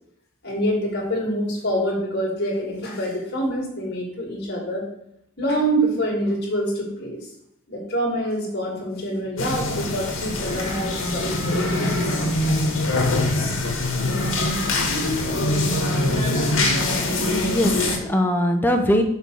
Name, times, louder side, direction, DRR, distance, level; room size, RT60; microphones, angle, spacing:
voice 1, 0.4-4.9 5.4-7.3 7.7-12.6 15.4-15.5, equal, 55° left, -4 dB, 2.5 m, -26 dB
sound 1, 9.4-18.0, left 2 dB, 75° left, 1.6 m, -23 dB
voice 2, 17.1-19.0, left 1 dB, 10° left, 4 dB, 0.7 m, -22 dB
6.6 x 4.0 x 6.3 m, 0.76 s
head